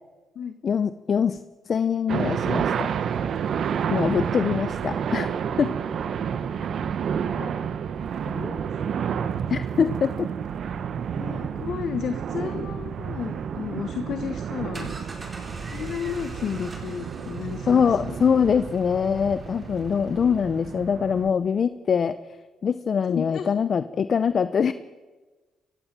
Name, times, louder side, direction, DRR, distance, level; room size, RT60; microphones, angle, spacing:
voice 1, 0.6-1.4 1.7-2.9 3.9-5.3 5.6-5.8 9.5-10.3 17.7-22.2 22.6-24.7, left 6 dB, 50° left, 14 dB, 0.6 m, -23 dB
sound 1, 2.1-21.3, right 7 dB, 60° right, 1.1 m, -30 dB
voice 2, 8.3-8.7 9.5-9.6 11.1-14.9 15.7-18.2 20.1-20.3 23.1-23.5, left 7 dB, 65° left, 9 dB, 1.3 m, -33 dB
sound 2, 14.4-20.8, right 2 dB, 25° right, 4.7 m, -43 dB
23.0 x 16.0 x 7.5 m, 1.3 s
cardioid pair, 90°, 0 cm